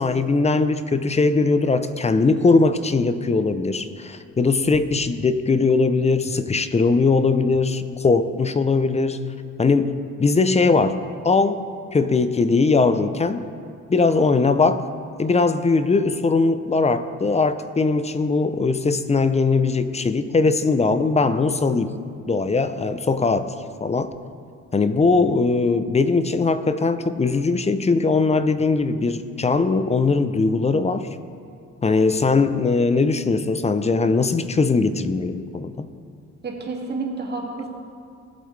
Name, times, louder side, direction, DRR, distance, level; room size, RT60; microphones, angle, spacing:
voice 1, 0.0-9.2 9.6-11.7 11.9-13.5 13.9-14.9 15.2-21.9 22.3-23.5 23.8-24.1 24.7-31.1 31.8-35.9, left 4 dB, 20° left, 11 dB, 0.6 m, -20 dB
voice 2, 36.4-37.7, right 3 dB, 35° right, -1 dB, 2.3 m, -29 dB
19.0 x 8.0 x 3.3 m, 2.3 s
cardioid pair, 90°, 30 cm